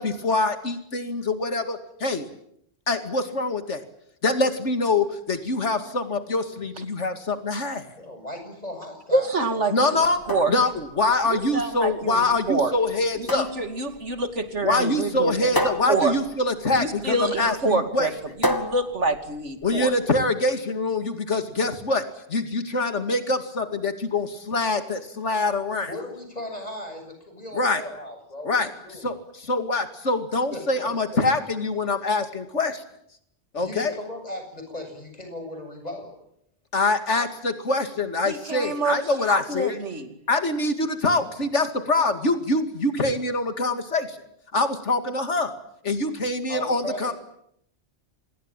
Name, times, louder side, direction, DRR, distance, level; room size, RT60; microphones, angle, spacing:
voice 1, 0.0-2.3 2.9-3.8 4.2-7.9 9.7-10.2 10.5-13.5 14.6-18.1 19.6-22.0 22.3-25.9 27.5-27.8 28.4-32.8 33.5-33.9 36.7-39.8 40.3-44.2 44.5-45.5 45.8-47.1, left 2 dB, 85° left, 8 dB, 2.6 m, -24 dB
voice 2, 8.0-9.3 25.9-28.6 28.8-29.1 30.5-31.2 33.6-36.1 46.5-47.1, left 1 dB, 35° left, 5 dB, 7.9 m, -36 dB
voice 3, 9.1-10.5 11.2-12.7 13.2-16.2 16.7-19.9 38.2-40.1, right 3 dB, 85° right, 8 dB, 2.8 m, -27 dB
sound 1, 10.0-20.0, equal, 20° left, 2.1 m, -32 dB
27.5 x 21.5 x 9.0 m, 0.72 s
omnidirectional pair, 1.2 m